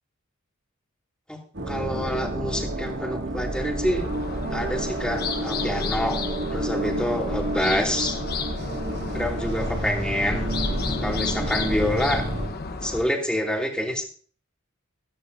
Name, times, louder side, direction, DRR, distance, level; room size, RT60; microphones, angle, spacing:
sound 1, 1.5-12.5, right 1 dB, 55° right, 2.3 m, -29 dB
voice 1, 1.7-4.1 4.5-6.2 6.5-8.1 9.1-10.6 11.0-12.2 12.8-14.0, left 1 dB, 5° left, 0 dB, 2.6 m, -27 dB
sound 2, 4.0-13.0, left 4 dB, 50° left, 1.1 m, -33 dB
15.0 x 13.5 x 2.7 m, 0.42 s
head